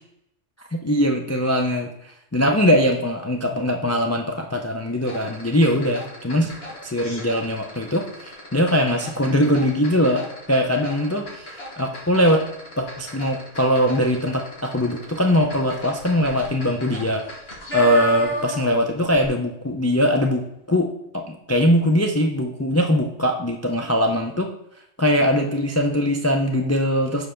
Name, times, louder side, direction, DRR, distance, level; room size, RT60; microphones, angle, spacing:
voice 1, 0.8-1.9 2.3-6.5 6.8-12.5 12.8-17.2 17.7-20.9 21.1-24.5 25.0-27.3, equal, 25° left, 2 dB, 0.3 m, -21 dB
sound 1, 5.0-18.8 19.1-19.3, right 1 dB, 55° left, 1.8 m, -35 dB
5.3 x 4.8 x 5.7 m, 0.79 s
omnidirectional pair, 1.3 m